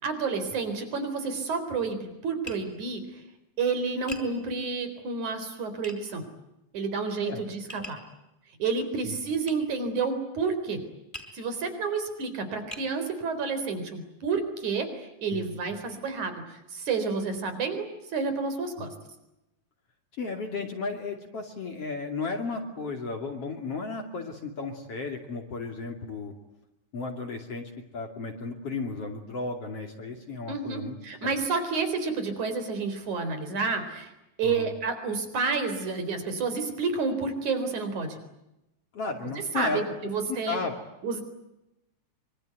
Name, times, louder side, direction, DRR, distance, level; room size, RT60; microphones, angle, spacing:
voice 1, 0.0-3.1 3.6-6.2 6.7-8.0 8.6-10.8 11.3-14.9 15.2-18.9 30.5-34.1 34.4-38.2 39.4-40.6 41.0-41.2, right 4 dB, 75° right, 9 dB, 5.5 m, -30 dB
Tap, 2.5-2.7 4.1-4.3 5.8-6.0 7.7-8.1 9.5-9.6 11.1-11.4 12.1-12.2 12.7-12.9, left 1 dB, 15° left, 4.3 m, -40 dB
voice 2, 20.2-26.3 26.9-31.0 34.4-34.7 38.9-39.9 40.3-40.7, left 3 dB, 50° left, 4 dB, 3.6 m, -34 dB
25.5 x 25.0 x 9.4 m, 0.92 s
omnidirectional pair, 3.4 m